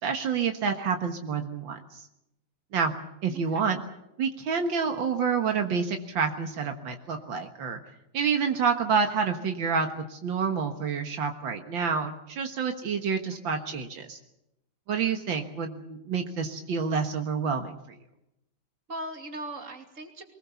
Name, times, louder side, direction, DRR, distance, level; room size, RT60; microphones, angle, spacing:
voice 1, 0.0-2.1 2.7-2.9 3.2-3.8 4.2-7.8 8.1-14.2 14.9-18.0, right 6 dB, 80° right, 5 dB, 2.2 m, -28 dB
voice 2, 3.3-3.7 13.3-13.7 18.9-20.2, right 1 dB, 40° right, 4 dB, 3.0 m, -40 dB
23.5 x 20.5 x 7.1 m, 0.84 s
omnidirectional pair, 2.1 m